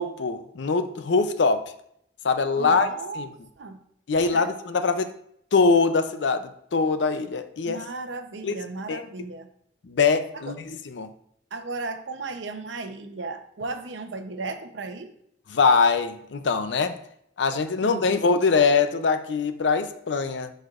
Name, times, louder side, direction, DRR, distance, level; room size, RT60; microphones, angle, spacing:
voice 1, 0.0-1.7 2.2-2.9 3.2-3.3 4.1-5.1 5.5-7.8 8.4-8.6 8.9-9.0 9.8-11.1 15.5-17.0 17.4-20.5, left 4 dB, 75° left, 0.5 m, -23 dB
voice 2, 2.6-3.3 3.6-3.8 4.1-4.5 7.7-9.5 10.3-10.5 11.5-15.1 17.8-18.0, right 3 dB, 85° right, 0.7 m, -35 dB
11.0 x 4.3 x 2.5 m
head